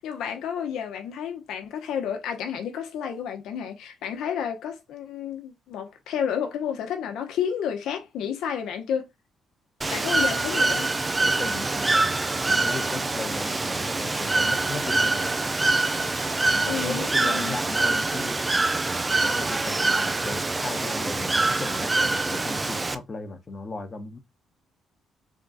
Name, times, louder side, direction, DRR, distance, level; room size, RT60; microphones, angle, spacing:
voice 1, 0.0-9.1 9.9-10.9 12.9-13.1 16.6-17.6, left 8 dB, 80° left, 0.9 m, -31 dB
Bird / Water, 9.8-23.0, right 3 dB, 20° right, 0.4 m, -25 dB
voice 2, 11.2-15.4 16.4-18.4 19.2-24.2, left 3 dB, 35° left, 1.0 m, -36 dB
3.7 x 2.3 x 4.0 m
cardioid pair, 90°, 0 cm